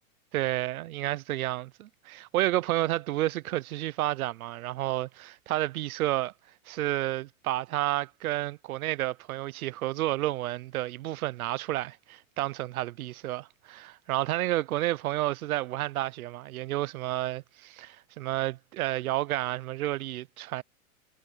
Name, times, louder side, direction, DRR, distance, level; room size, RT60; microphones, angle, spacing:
voice 1, 0.3-6.3 6.7-20.6, right 15 dB, 90° right, 0.8 m, -30 dB
supercardioid pair, 160°, 42 cm